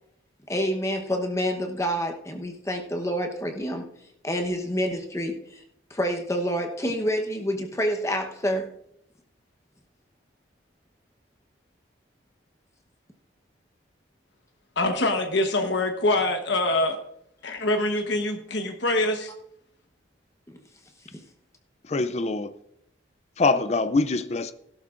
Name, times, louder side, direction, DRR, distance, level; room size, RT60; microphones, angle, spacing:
voice 1, 0.5-3.8 4.2-5.6 5.9-8.7 20.5-20.6, equal, 15° left, 4 dB, 1.0 m, -28 dB
voice 2, 14.8-17.0 17.4-19.3, left 2 dB, 70° left, 4 dB, 1.1 m, -24 dB
voice 3, 21.9-22.5 23.4-24.5, left 3 dB, 35° left, 12 dB, 0.4 m, -24 dB
17.0 x 12.0 x 2.5 m, 0.75 s
head